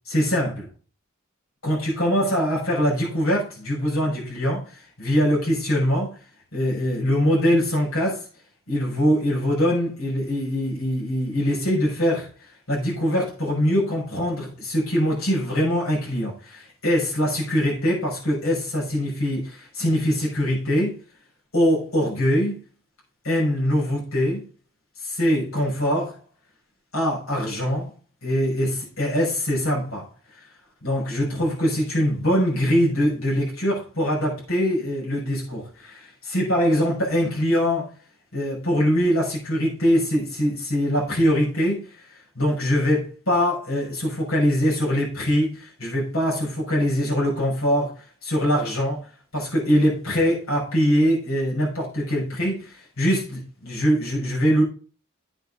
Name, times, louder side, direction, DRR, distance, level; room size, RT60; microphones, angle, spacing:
voice 1, 0.1-0.6 1.6-6.1 6.5-8.3 8.7-12.3 12.7-21.0 21.5-22.6 23.2-24.4 25.0-26.2 26.9-27.9 28.2-30.0 30.8-37.9 38.3-41.8 42.3-49.0 49.3-54.6, equal, 85° left, 6.3 m, -23 dB
9.8 x 8.2 x 3.7 m
head